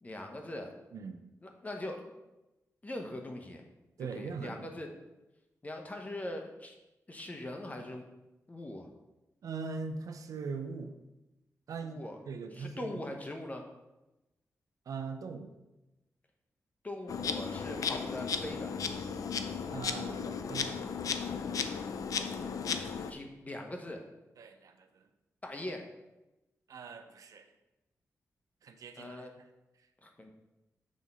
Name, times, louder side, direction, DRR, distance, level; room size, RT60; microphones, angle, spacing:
voice 1, 0.0-0.7 1.4-2.1 2.8-3.6 4.0-4.9 5.6-6.8 7.1-8.1 8.5-8.9 11.8-12.2 12.5-13.6 16.8-18.8 22.4-22.6 23.0-24.0 25.4-25.9 29.0-29.3 30.0-30.3, left 1 dB, 25° left, 3 dB, 1.1 m, -41 dB
voice 2, 0.9-1.2 4.0-4.7 9.4-10.9 11.7-13.0 14.9-15.5 19.7-20.8 24.4-25.1 26.7-27.5 28.6-29.3, right 4 dB, 75° right, 7 dB, 0.6 m, -41 dB
Insect, 17.1-23.1, left 6 dB, 75° left, 0.5 m, -35 dB
6.4 x 3.7 x 5.5 m, 1.0 s
cardioid pair, 75°, 6 cm